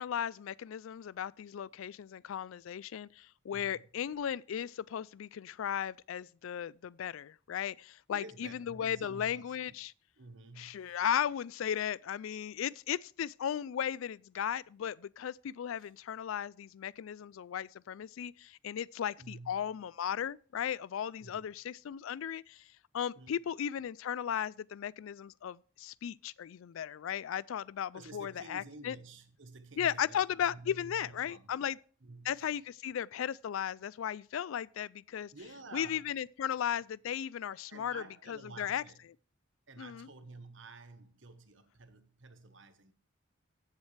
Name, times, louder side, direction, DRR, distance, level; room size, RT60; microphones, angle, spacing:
voice 1, 0.0-9.9 10.6-22.6 22.9-29.0 29.8-31.8 32.3-35.3 35.7-38.8 39.8-40.1, left 9 dB, 80° left, 0.3 m, -36 dB
voice 2, 3.5-4.1 8.1-9.6 10.2-11.0 15.8-15.9 19.2-19.8 21.2-21.5 23.1-23.5 27.9-31.7 32.0-32.6 35.3-36.1 37.7-39.1 39.7-42.9, right 3 dB, 65° right, 1.1 m, -51 dB
16.0 x 7.4 x 3.3 m
head